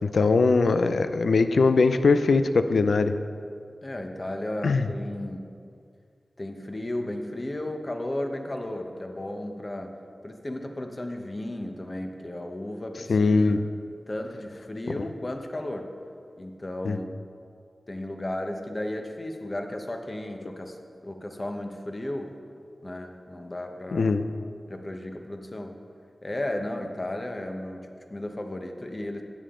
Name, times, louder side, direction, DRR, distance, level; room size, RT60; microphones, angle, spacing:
voice 1, 0.0-3.1 4.6-4.9 13.1-13.6 15.0-15.1 16.8-17.0 23.9-24.2, left 4 dB, 90° left, 10 dB, 0.5 m, -21 dB
voice 2, 3.8-5.5 6.4-10.0 10.2-13.3 13.6-13.7 14.1-15.9 16.4-17.2 17.9-20.8 21.0-22.4 22.8-24.1 24.7-25.8 26.2-29.2, left 1 dB, 35° left, 4 dB, 1.1 m, -34 dB
14.0 x 8.7 x 3.8 m, 2.3 s
wide cardioid pair, 65°, 0 cm